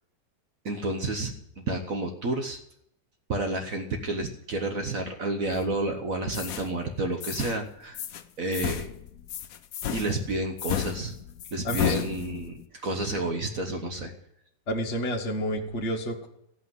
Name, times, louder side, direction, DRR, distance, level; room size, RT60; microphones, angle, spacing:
voice 1, 0.6-2.6 3.3-8.0 8.4-8.9 9.9-11.1 11.5-12.5 12.8-14.1, right 2 dB, 50° right, 4 dB, 1.4 m, -30 dB
sound 1, 5.5-5.9 6.3-6.7 7.2-7.6 7.9-8.2 8.5-12.6, left 9 dB, 60° left, 1.1 m, -33 dB
voice 2, 11.6-12.0 14.7-16.3, equal, 40° left, 2 dB, 1.7 m, -30 dB
15.5 x 5.8 x 9.4 m, 0.76 s
omnidirectional pair, 1.9 m